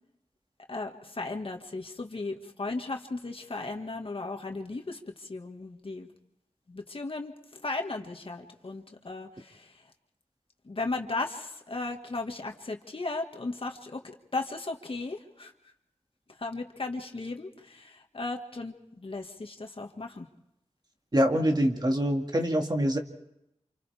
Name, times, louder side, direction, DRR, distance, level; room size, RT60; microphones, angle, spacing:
voice 1, 0.7-6.1 6.7-9.7 10.7-14.0 14.3-15.5 16.4-20.3, left 3 dB, 55° left, 3 dB, 1.9 m, -36 dB
voice 2, 21.1-23.0, equal, 40° right, 3 dB, 2.2 m, -25 dB
29.5 x 27.5 x 3.5 m, 0.81 s
wide cardioid pair, 70°, 11 cm